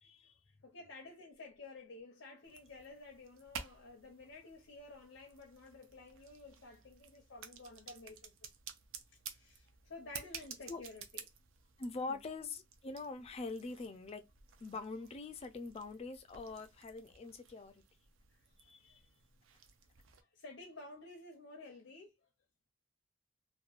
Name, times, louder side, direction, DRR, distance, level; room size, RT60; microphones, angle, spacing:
voice 1, 0.0-0.3 10.7-10.8 11.8-14.3 14.6-17.7 18.6-19.0, left 3 dB, 30° left, 0.4 m, -44 dB
voice 2, 0.6-8.5 9.3-11.2 12.0-12.2 18.9-19.0 20.3-22.1, left 2 dB, 85° left, 0.7 m, -52 dB
sound 1, 2.4-20.2, right 7 dB, 85° right, 0.5 m, -53 dB
2.9 x 2.2 x 2.3 m
head